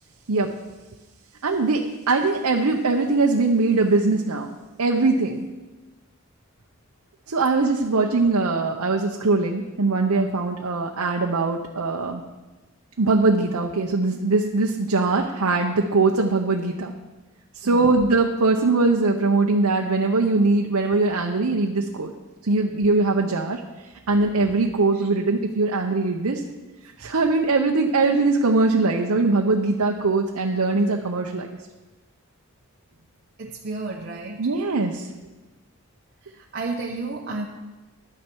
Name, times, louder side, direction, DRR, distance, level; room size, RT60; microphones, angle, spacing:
voice 1, 1.4-4.5 4.8-5.4 7.3-12.2 13.0-16.9 17.5-22.1 22.4-23.6 24.1-26.4 27.0-31.5 34.4-35.1, right 3 dB, 90° right, 2 dB, 0.8 m, -21 dB
voice 2, 33.4-34.4 36.3-37.5, right 3 dB, 50° right, 0 dB, 0.8 m, -32 dB
11.5 x 9.6 x 4.6 m, 1.2 s
head